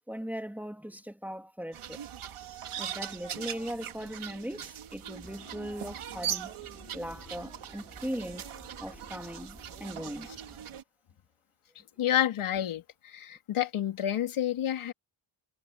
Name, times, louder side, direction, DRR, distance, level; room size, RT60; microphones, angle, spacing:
voice 1, 0.1-2.0 2.8-6.5 6.9-8.5 8.8-10.3, equal, 5° right, 2.9 m, -39 dB
sound 1, 1.7-10.8, right 9 dB, 85° right, 3.0 m, -40 dB
sound 2, 5.2-10.6, left 3 dB, 20° left, 3.5 m, -54 dB
voice 2, 12.0-14.9, left 11 dB, 90° left, 2.6 m, -29 dB
wide cardioid pair, 115°, 49 cm